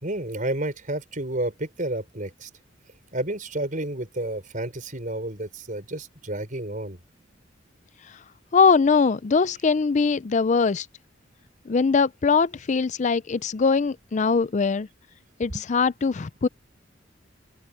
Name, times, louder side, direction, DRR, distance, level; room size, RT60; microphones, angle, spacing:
voice 1, 0.0-2.5 3.1-7.0 15.5-15.7, right 1 dB, 45° right, 5.3 m, -31 dB
voice 2, 8.5-10.9 11.7-14.9 15.4-16.5, left 5 dB, 40° left, 0.4 m, -21 dB
open air
head